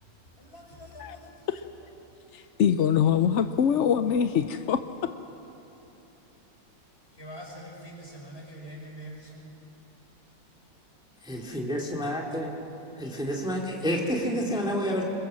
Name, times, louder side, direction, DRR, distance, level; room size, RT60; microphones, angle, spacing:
voice 1, 0.4-1.3 7.2-9.5, equal, 30° left, 0 dB, 6.1 m, -44 dB
voice 2, 2.3-4.8, left 8 dB, 65° left, 10 dB, 0.7 m, -24 dB
voice 3, 11.2-12.5 13.0-15.0, equal, ahead, -1 dB, 2.3 m, -29 dB
27.0 x 21.5 x 7.5 m, 3.0 s
omnidirectional pair, 1.9 m